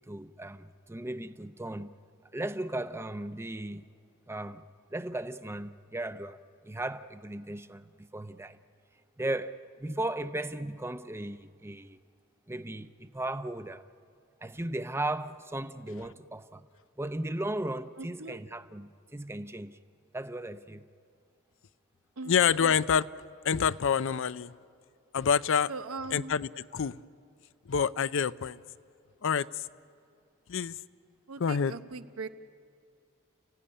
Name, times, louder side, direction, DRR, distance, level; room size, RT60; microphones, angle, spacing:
voice 1, 0.1-1.9 2.3-3.8 4.3-4.6 4.9-6.4 6.6-8.6 9.2-12.0 12.5-13.9 14.4-16.7 17.0-19.8 20.1-20.8, right 1 dB, 10° right, 0.6 m, -36 dB
voice 2, 18.0-18.4 22.2-22.7 25.7-26.4 31.3-32.3, right 3 dB, 85° right, 0.9 m, -40 dB
voice 3, 22.3-23.1 23.4-24.5 25.1-25.7 26.1-27.0 27.7-28.6 29.2-29.6 30.5-30.8 31.4-31.7, left 7 dB, 65° left, 0.5 m, -27 dB
30.0 x 16.0 x 9.9 m
head